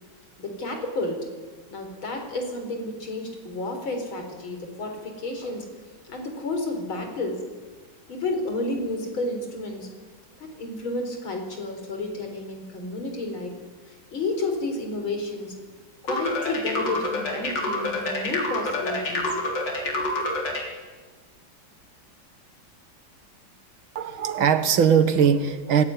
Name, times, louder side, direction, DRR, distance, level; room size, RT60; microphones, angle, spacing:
voice 1, 0.4-1.3 1.7-5.7 6.1-7.4 8.1-9.9 10.4-13.5 13.9-15.5 16.0-19.4 20.0-20.1, left 2 dB, 80° left, 4 dB, 4.9 m, -31 dB
sound 1, 16.1-20.7, left 1 dB, 60° left, 4.3 m, -27 dB
voice 2, 24.0-25.8, right 7 dB, 85° right, 11 dB, 2.3 m, -20 dB
25.0 x 17.0 x 9.7 m, 1.4 s
omnidirectional pair, 2.2 m